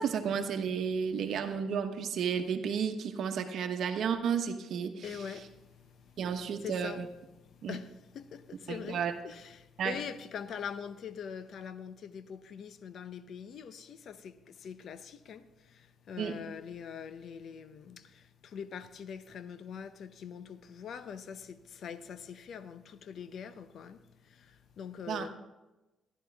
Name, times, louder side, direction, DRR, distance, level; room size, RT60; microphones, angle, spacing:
voice 1, 0.0-5.0 6.2-7.1 7.6-7.8 8.7-9.1 9.8-9.9 16.2-16.4 25.1-25.3, right 7 dB, 70° right, 1.0 m, -32 dB
voice 2, 5.0-7.1 7.4-25.3, left 7 dB, 65° left, 0.7 m, -44 dB
13.0 x 11.0 x 3.4 m
cardioid pair, 90°, 0 cm